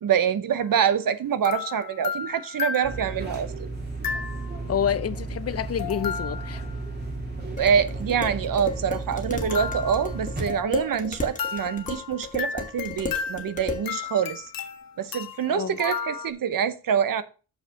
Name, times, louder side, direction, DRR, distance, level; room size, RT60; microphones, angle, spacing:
voice 1, 0.0-3.5 7.6-14.4 15.0-17.2, right 8 dB, 65° right, 0.8 m, -25 dB
sound 1, 0.6-0.8 1.4-3.4 4.0-4.7 5.8-6.8 9.4-11.0 11.4-16.3, left 7 dB, 70° left, 1.2 m, -34 dB
sound 2, 2.8-10.6, right 3 dB, 30° right, 2.3 m, -34 dB
voice 2, 4.7-6.6 15.5-15.8, left 8 dB, 45° left, 0.5 m, -28 dB
Dishes pots and pans, 7.6-13.9, left 4 dB, 20° left, 1.2 m, -35 dB
6.7 x 5.6 x 5.6 m
wide cardioid pair, 155°, 35 cm